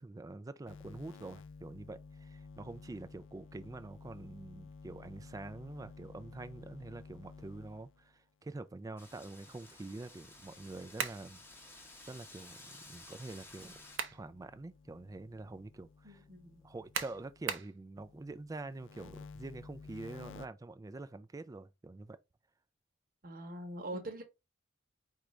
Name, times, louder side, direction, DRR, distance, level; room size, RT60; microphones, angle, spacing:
voice 1, 0.0-11.4 12.1-13.8 14.1-22.2, right 2 dB, 20° right, 0.3 m, -46 dB
sound 1, 0.7-8.1 10.1-12.3 12.8-17.5 18.0-20.5, left 4 dB, 85° left, 0.4 m, -54 dB
Wind, 9.0-14.0, left 2 dB, 10° left, 0.8 m, -54 dB
sound 2, 11.0-11.3 13.6-14.3 14.7-14.8 16.9-17.8, right 6 dB, 75° right, 0.6 m, -37 dB
voice 2, 16.0-16.6 23.2-24.2, right 1 dB, 50° right, 1.0 m, -43 dB
4.5 x 2.5 x 3.1 m
head